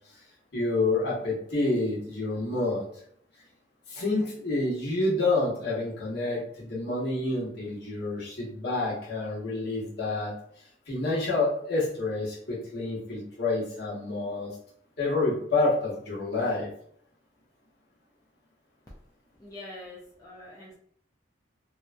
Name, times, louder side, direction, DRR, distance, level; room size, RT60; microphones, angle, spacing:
voice 1, 0.5-2.9 3.9-10.3 10.9-14.5 15.0-16.7, left 2 dB, 55° left, -5 dB, 1.0 m, -28 dB
voice 2, 19.4-20.7, left 1 dB, 20° left, -5 dB, 0.4 m, -44 dB
2.9 x 2.2 x 2.5 m, 0.66 s
head